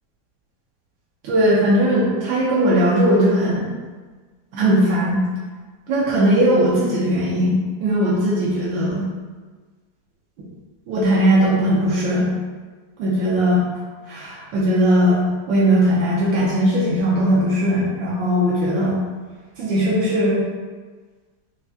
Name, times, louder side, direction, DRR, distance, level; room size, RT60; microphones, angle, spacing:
voice 1, 1.2-3.7 4.5-5.2 5.9-9.1 10.9-12.3 13.0-13.6 14.1-19.0 19.6-20.4, equal, 80° right, -7 dB, 1.4 m, -18 dB
5.7 x 2.1 x 2.7 m, 1.4 s
omnidirectional pair, 2.1 m